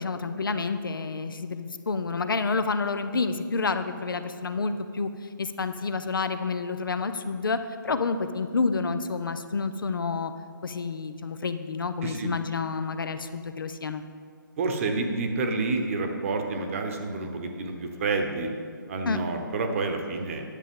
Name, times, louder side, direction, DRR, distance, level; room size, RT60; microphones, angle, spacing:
voice 1, 0.0-5.1 5.4-7.6 7.8-10.3 10.6-14.0 19.1-19.2, left 4 dB, 70° left, 10 dB, 0.6 m, -29 dB
voice 2, 12.0-12.3 14.6-18.5 18.9-20.4, right 3 dB, 40° right, 4 dB, 1.0 m, -29 dB
10.0 x 8.3 x 3.7 m, 2.2 s
figure-of-eight pair, 145°, 12 cm